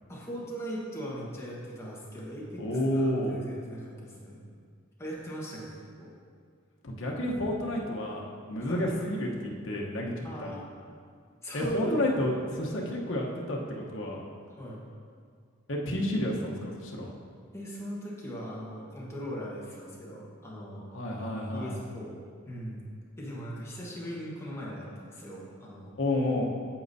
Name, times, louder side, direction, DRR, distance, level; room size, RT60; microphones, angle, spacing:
voice 1, 0.1-4.4 5.0-6.1 8.6-8.8 10.2-10.6 11.4-12.0 12.5-12.9 14.6-14.8 17.5-20.9 21.5-22.8 23.2-25.9, equal, 15° left, -5 dB, 1.3 m, -39 dB
voice 2, 2.6-3.4 6.8-10.5 11.5-14.2 15.7-17.2 20.9-21.7 26.0-26.4, left 1 dB, 70° left, -2 dB, 1.0 m, -30 dB
8.6 x 7.9 x 2.7 m, 2.1 s
head